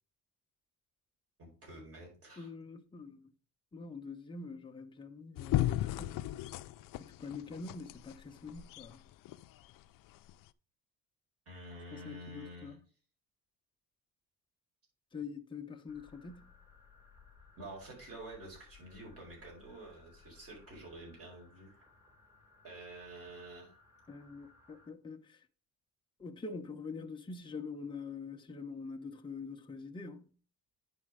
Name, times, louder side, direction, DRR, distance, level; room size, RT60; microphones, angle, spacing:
voice 1, 1.4-2.5 11.4-12.8 17.6-21.8 22.6-23.8, right 1 dB, 40° right, 4.8 m, -49 dB
voice 2, 2.4-3.2 3.7-6.2 7.0-9.0 11.9-12.8 15.1-16.5 24.1-25.4 26.2-30.3, left 4 dB, 15° left, 0.8 m, -45 dB
sound 1, 5.4-9.5 10.3-10.4, left 14 dB, 65° left, 0.5 m, -35 dB
sound 2, 15.9-24.9, left 4 dB, 10° right, 1.8 m, -62 dB
9.8 x 4.3 x 4.9 m
cardioid pair, 130°, 35 cm